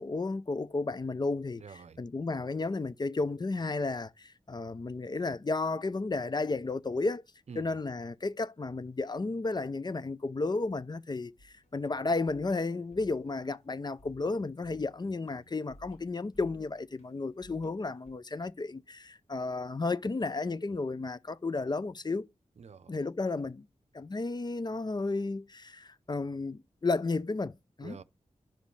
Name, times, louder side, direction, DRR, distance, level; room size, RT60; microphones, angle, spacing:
voice 1, 0.0-7.2 7.6-22.3 22.9-23.7 23.9-28.0, left 3 dB, 35° left, 0.5 m, -33 dB
voice 2, 1.6-2.0 7.5-7.8 22.6-23.0 27.8-28.0, right 5 dB, 65° right, 0.6 m, -47 dB
sound 1, 11.4-18.1, left 1 dB, 75° left, 4.3 m, -59 dB
11.5 x 5.3 x 3.2 m
cardioid pair, 55°, 12 cm